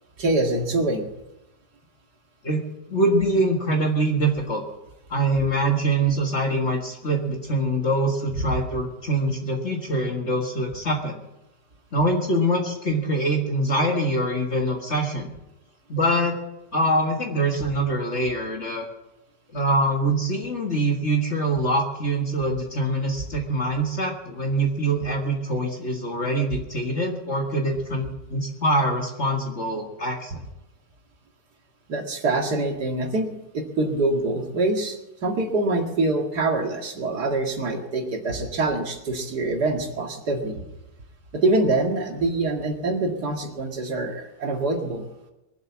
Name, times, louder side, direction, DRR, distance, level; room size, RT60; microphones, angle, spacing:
voice 1, 0.2-1.1 31.9-40.6 41.3-45.1, right 2 dB, 70° right, 2 dB, 2.6 m, -25 dB
voice 2, 2.9-4.6 5.1-11.2 11.9-15.3 15.9-16.4 16.7-18.9 19.5-30.4, right 1 dB, 40° left, 1 dB, 1.9 m, -24 dB
22.0 x 8.1 x 7.2 m, 0.94 s
omnidirectional pair, 1.8 m